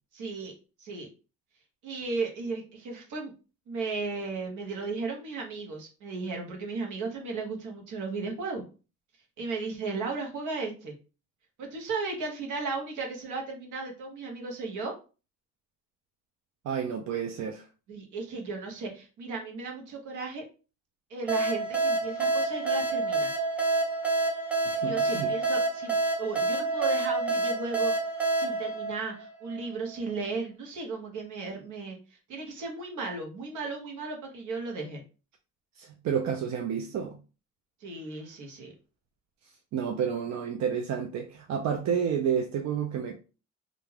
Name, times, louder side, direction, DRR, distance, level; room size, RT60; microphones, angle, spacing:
voice 1, 0.1-0.5 0.8-1.1 1.8-3.3 3.7-8.6 9.4-10.9 11.6-14.9 17.9-20.4 21.1-23.3 24.8-27.9 28.4-35.0 37.8-38.7, right 3 dB, 80° right, 1.0 m, -35 dB
voice 2, 16.6-17.7 24.7-25.3 35.8-37.2 39.7-43.2, right 7 dB, 65° right, 0.5 m, -30 dB
sound 1, 21.3-29.7, right 3 dB, 5° right, 0.7 m, -28 dB
2.5 x 2.2 x 3.2 m
cardioid pair, 90°, 30 cm